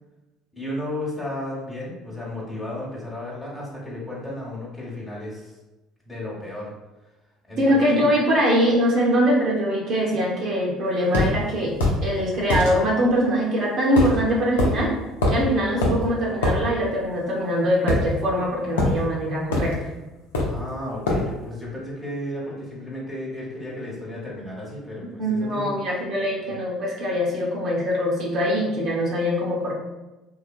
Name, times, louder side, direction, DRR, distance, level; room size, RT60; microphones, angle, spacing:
voice 1, 0.5-5.5 6.0-6.7 7.5-8.1 20.4-25.7 26.4-26.5, left 1 dB, 15° left, -5 dB, 1.1 m, -33 dB
voice 2, 7.6-14.9 15.3-19.7 25.2-29.7, equal, 55° right, -3 dB, 0.8 m, -22 dB
sound 1, 11.1-11.3 11.8-12.0 12.5-12.7 14.0-14.2 14.6-14.7 15.2-15.4 15.8-16.0 16.4-16.6 17.9-18.4 18.8-19.0 19.5-19.7 20.3-20.6 21.1-21.3, left 2 dB, 85° left, 0.5 m, -22 dB
3.1 x 2.1 x 2.5 m, 1.0 s
hypercardioid pair, 65°, 0 cm